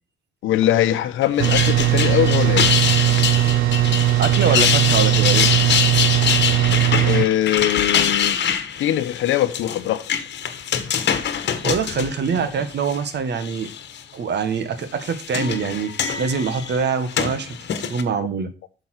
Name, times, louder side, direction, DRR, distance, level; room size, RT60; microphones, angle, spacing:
voice 1, 0.4-2.8 7.0-8.4 8.8-10.0, left 12 dB, 85° left, 0.9 m, -21 dB
sound 1, 1.2-13.0 13.4-14.0 14.8-18.0, left 8 dB, 60° left, 1.3 m, -24 dB
sound 2, 1.4-7.3, right 14 dB, 85° right, 0.6 m, -18 dB
voice 2, 4.2-5.5 11.6-13.7 14.1-18.5, right 6 dB, 60° right, 1.5 m, -24 dB
8.5 x 6.9 x 4.4 m
cardioid pair, 90°, 20 cm